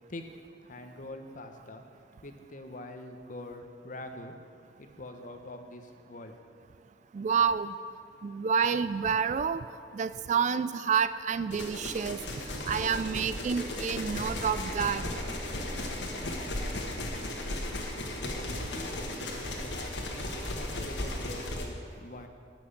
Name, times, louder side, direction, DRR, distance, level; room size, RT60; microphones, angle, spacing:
voice 1, 0.6-1.8 2.2-4.4 4.8-6.4 18.7-22.3, left 1 dB, 50° left, 6 dB, 0.9 m, -44 dB
voice 2, 7.1-7.7 8.2-9.6 9.9-12.2 12.7-15.0, right 6 dB, 45° right, 13 dB, 0.3 m, -28 dB
sound 1, 11.5-21.7, left 1 dB, 80° left, 1.5 m, -35 dB
11.0 x 6.1 x 8.2 m, 2.4 s
head